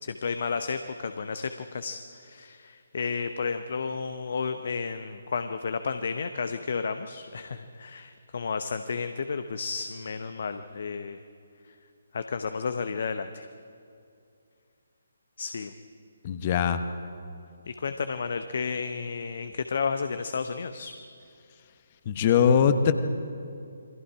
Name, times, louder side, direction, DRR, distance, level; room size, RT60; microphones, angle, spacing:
voice 1, 0.0-11.2 11.6-11.7 12.1-13.5 15.4-15.7 17.7-20.9, left 5 dB, 50° left, 9 dB, 0.9 m, -32 dB
voice 2, 16.2-16.8 22.1-22.9, left 7 dB, 30° left, 9 dB, 1.2 m, -21 dB
28.0 x 23.5 x 4.9 m, 2.5 s
figure-of-eight pair, 140°, 0 cm